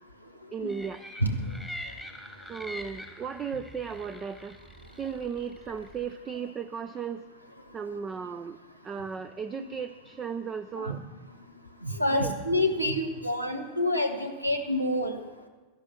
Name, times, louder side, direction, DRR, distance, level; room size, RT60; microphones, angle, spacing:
voice 1, 0.5-1.0 2.5-4.6 5.0-7.2 7.7-11.0 12.1-12.3, right 6 dB, 20° right, 11 dB, 0.5 m, -35 dB
sound 1, 0.7-6.1, left 1 dB, 5° right, 1.4 m, -44 dB
voice 2, 1.2-1.5 9.6-9.7 10.8-11.0 11.8-15.2, left 1 dB, 85° right, 6 dB, 1.2 m, -28 dB
12.5 x 11.0 x 5.9 m, 1.2 s
figure-of-eight pair, 90°, 0 cm